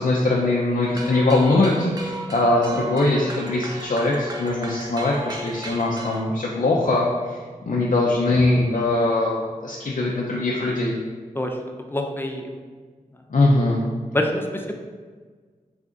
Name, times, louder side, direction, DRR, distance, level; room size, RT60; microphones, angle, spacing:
voice 1, 0.0-11.0 13.3-13.8, left 2 dB, 70° left, -3 dB, 0.6 m, -21 dB
sound 1, 0.8-6.3, right 2 dB, 30° right, 0.6 m, -35 dB
voice 2, 11.9-12.5 14.1-14.7, left 1 dB, 15° left, 2 dB, 0.6 m, -26 dB
3.8 x 3.3 x 3.7 m, 1.5 s
wide cardioid pair, 60°, 14 cm